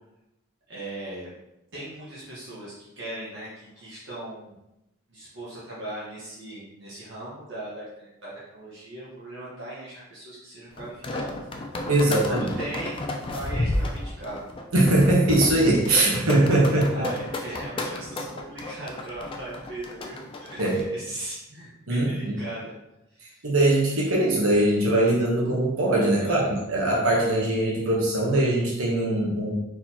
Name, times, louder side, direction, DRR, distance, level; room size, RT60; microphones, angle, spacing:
voice 1, 0.7-1.3 1.7-4.6 5.1-11.6 12.1-13.0 13.2-14.4 16.9-22.7 23.1-23.4 26.2-26.5, right 1 dB, 55° right, -8 dB, 1.2 m, -38 dB
sound 1, 10.8-20.8, left 1 dB, 25° left, 0.3 m, -32 dB
voice 2, 11.9-12.5 14.7-17.1 20.6-20.8 21.9-22.4 23.4-29.5, right 1 dB, 80° right, -3 dB, 1.0 m, -21 dB
4.3 x 4.1 x 2.8 m, 0.91 s
head